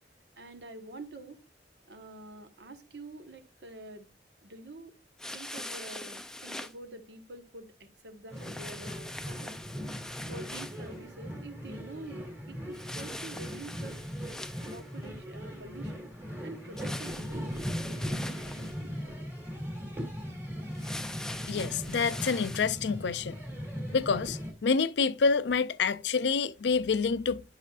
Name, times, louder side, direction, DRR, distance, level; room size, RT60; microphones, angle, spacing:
voice 1, 0.4-1.4 1.9-4.1 4.4-4.9 5.3-9.5 10.3-14.0 14.7-16.1 16.4-18.0 18.8-18.9, right 2 dB, 70° right, 1.2 m, -47 dB
sound 1, 5.2-6.7 8.4-10.9 12.7-15.1 16.8-18.8 20.7-22.8, left 1 dB, 5° left, 0.4 m, -42 dB
sound 2, 8.3-24.5, equal, 15° right, 2.0 m, -39 dB
voice 2, 21.5-23.4 23.9-27.4, left 5 dB, 75° left, 0.5 m, -27 dB
10.5 x 5.7 x 2.4 m
head